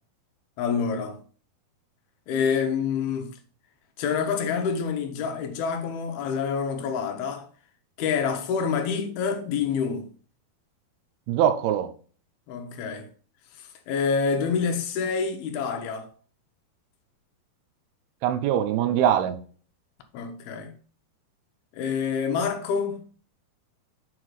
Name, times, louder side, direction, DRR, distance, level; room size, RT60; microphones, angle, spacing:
voice 1, 0.6-1.2 2.3-3.4 4.0-7.5 8.0-10.1 12.5-13.1 13.9-16.1 20.1-20.7 21.7-23.0, left 6 dB, 80° left, 2.9 m, -27 dB
voice 2, 11.3-11.9 18.2-19.4, right 10 dB, 85° right, 2.7 m, -22 dB
7.7 x 4.6 x 4.1 m
omnidirectional pair, 4.4 m